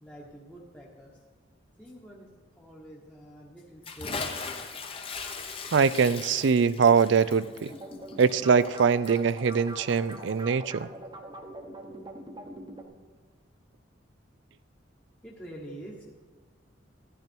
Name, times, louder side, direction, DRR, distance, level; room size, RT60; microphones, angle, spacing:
voice 1, 0.0-1.2 1.8-2.3 2.6-4.2 15.2-16.0, right 1 dB, 5° left, -4 dB, 1.1 m, -46 dB
Bathtub (filling or washing) / Splash splatter, 3.8-10.4, left 4 dB, 30° left, 0.9 m, -39 dB
voice 2, 5.7-7.7 8.2-10.9, right 6 dB, 70° right, 17 dB, 0.4 m, -23 dB
sound 1, 7.7-12.8, right 1 dB, 25° right, 0.9 m, -43 dB
13.5 x 10.5 x 4.5 m, 1.4 s
head